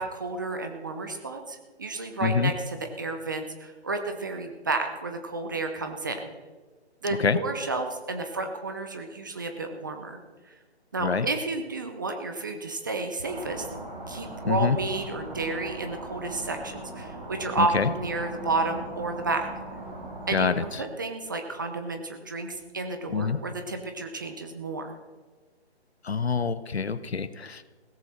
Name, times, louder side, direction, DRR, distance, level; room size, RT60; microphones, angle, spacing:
voice 1, 0.0-6.2 7.0-10.2 10.5-10.6 10.9-13.7 14.1-19.5 20.3-24.9, right 3 dB, 20° right, 6 dB, 0.7 m, -31 dB
voice 2, 2.2-2.5 7.2-7.4 11.0-11.3 14.4-14.8 17.6-17.9 20.3-20.6 23.1-23.4 26.0-27.6, left 5 dB, 70° left, 15 dB, 1.0 m, -25 dB
sound 1, 13.2-20.6, right 2 dB, 40° right, 4.0 m, -39 dB
16.0 x 14.0 x 4.3 m, 1.3 s
figure-of-eight pair, 150°, 33 cm